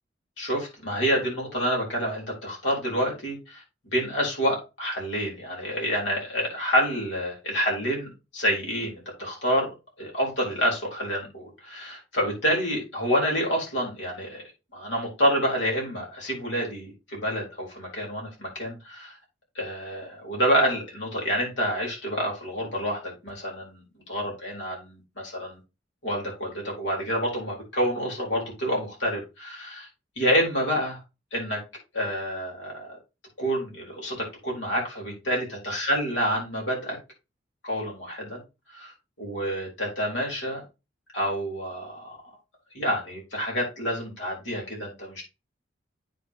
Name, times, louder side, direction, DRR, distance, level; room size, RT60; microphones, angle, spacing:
voice 1, 0.4-3.6 3.9-14.4 14.7-19.1 19.5-23.8 24.1-25.6 26.0-29.9 30.2-31.0 31.3-31.6 31.9-33.0 33.4-37.0 37.6-38.4 38.7-40.6 41.1-42.2 42.7-45.2, equal, 75° left, 4.3 m, -28 dB
9.0 x 5.8 x 3.0 m
head